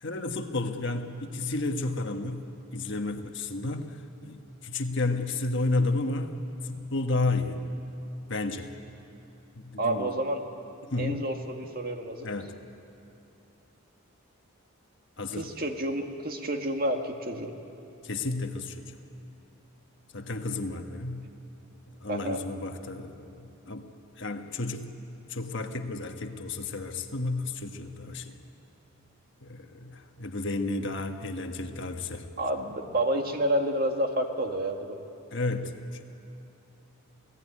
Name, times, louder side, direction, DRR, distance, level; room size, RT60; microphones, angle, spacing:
voice 1, 0.0-2.4 2.7-6.3 6.6-7.6 8.3-8.7 9.5-10.1 10.8-11.2 12.2-12.5 15.2-15.5 18.0-18.9 20.1-21.2 22.0-23.8 24.2-24.9 25.3-28.3 29.4-32.2 35.3-36.1, left 2 dB, 55° left, 5 dB, 1.4 m, -32 dB
voice 2, 9.8-10.4 11.0-12.3 15.3-17.6 22.1-22.4 32.4-35.0, right 1 dB, 45° right, 4 dB, 1.8 m, -29 dB
28.5 x 18.0 x 9.9 m, 2.7 s
head